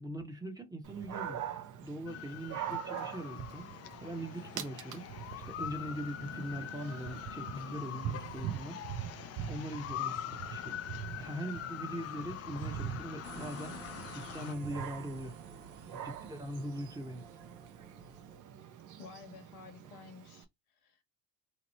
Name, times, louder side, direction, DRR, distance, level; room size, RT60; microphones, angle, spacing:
voice 1, 0.0-1.4 1.8-3.7 4.0-8.8 9.5-10.2 10.5-10.8 11.2-13.7 14.1-15.4 15.9-17.2, right 1 dB, 10° right, 0.8 m, -41 dB
Dog, 0.8-20.4, right 9 dB, 45° right, 0.7 m, -44 dB
sound 1, 2.1-14.5, left 11 dB, 35° left, 0.4 m, -43 dB
sound 2, 13.2-18.4, right 5 dB, 75° right, 0.9 m, -52 dB
voice 2, 19.0-20.5 20.8-21.0, left 5 dB, 90° left, 1.0 m, -51 dB
3.0 x 2.0 x 4.1 m
hypercardioid pair, 70°, 43 cm